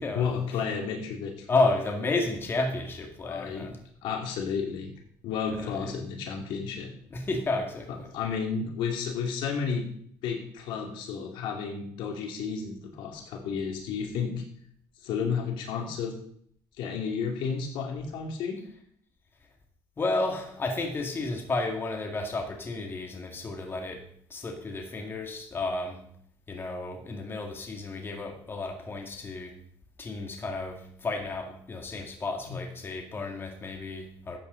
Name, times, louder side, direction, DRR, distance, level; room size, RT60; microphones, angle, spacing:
voice 1, 0.1-1.5 3.2-3.7 4.0-4.9 5.2-6.9 7.9-9.9 10.2-14.4 15.0-16.1 16.8-18.6 32.5-32.6, left 6 dB, 75° left, 2.6 m, -32 dB
voice 2, 1.5-3.8 5.5-5.9 7.1-8.1 20.0-24.0 24.3-26.0 26.5-29.5 30.0-34.4, left 2 dB, 25° left, 2.2 m, -32 dB
13.5 x 8.7 x 4.0 m
cardioid pair, 110°, 8 cm